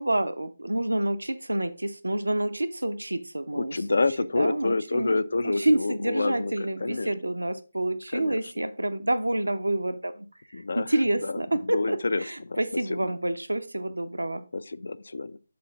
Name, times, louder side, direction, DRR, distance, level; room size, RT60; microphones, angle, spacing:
voice 1, 0.0-4.0 4.4-5.2 5.4-14.4, right 1 dB, 80° right, 0.5 m, -28 dB
voice 2, 3.5-7.1 8.1-8.4 10.5-10.9 11.2-12.6 12.9-13.0 14.5-15.4, left 3 dB, 65° left, 0.4 m, -28 dB
6.8 x 4.4 x 3.8 m
figure-of-eight pair, 150°, 0 cm